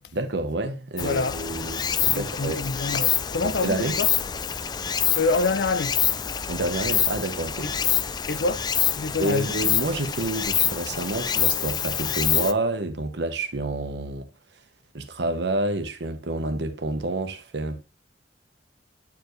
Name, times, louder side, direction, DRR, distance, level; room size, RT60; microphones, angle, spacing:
voice 1, 0.1-2.6 3.4-4.0 6.5-7.7 9.2-14.3 14.9-17.8, right 2 dB, 65° right, 1.0 m, -28 dB
voice 2, 1.0-1.4 2.1-4.1 5.2-6.0 7.6-7.8 8.3-9.5, left 3 dB, 65° left, 0.6 m, -26 dB
Stream, 1.0-12.5, left 8 dB, 25° left, 0.3 m, -26 dB
8.3 x 4.7 x 3.1 m
head